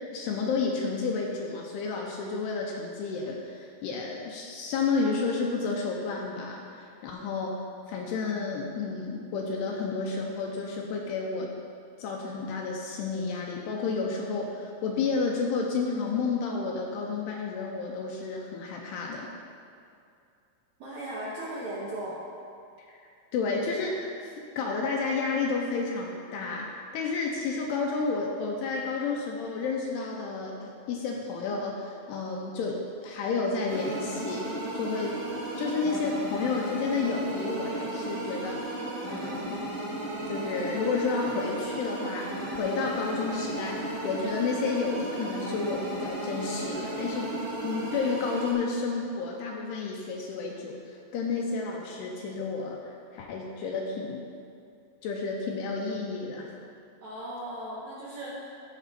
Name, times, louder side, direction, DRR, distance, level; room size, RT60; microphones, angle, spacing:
voice 1, 0.1-7.6 7.9-11.5 12.0-19.3 22.9-23.0 23.3-35.2 35.6-38.6 39.1-39.6 40.3-42.3 42.6-47.3 47.6-54.3 55.0-56.5, left 4 dB, 80° left, -1 dB, 2.6 m, -31 dB
voice 2, 20.8-22.2 57.0-58.5, right 1 dB, 70° right, -7 dB, 1.7 m, -37 dB
sound 1, 33.7-48.5, right 1 dB, 45° right, 2.4 m, -34 dB
15.0 x 5.1 x 4.2 m, 2.5 s
omnidirectional pair, 5.1 m